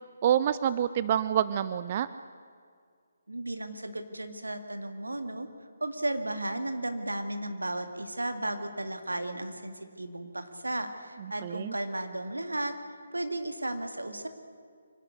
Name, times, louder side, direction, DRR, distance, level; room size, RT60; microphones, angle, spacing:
voice 1, 0.2-2.1 11.4-11.7, right 10 dB, 35° right, 15 dB, 0.5 m, -27 dB
voice 2, 3.3-5.5 5.8-12.8 13.1-14.3, right 1 dB, 85° right, 8 dB, 2.0 m, -34 dB
25.0 x 11.5 x 9.6 m, 2.1 s
figure-of-eight pair, 145°, 0 cm